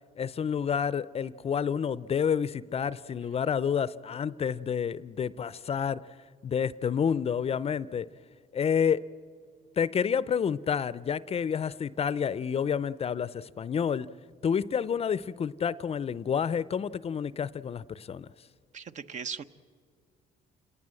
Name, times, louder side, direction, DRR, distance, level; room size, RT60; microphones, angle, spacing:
voice 1, 0.2-6.0 6.4-8.1 8.5-9.0 9.8-14.1 14.4-18.3, left 7 dB, 40° left, 0.5 m, -29 dB
voice 2, 18.7-19.4, right 6 dB, 50° right, 0.8 m, -38 dB
28.5 x 18.5 x 7.7 m
cardioid pair, 90°, 16 cm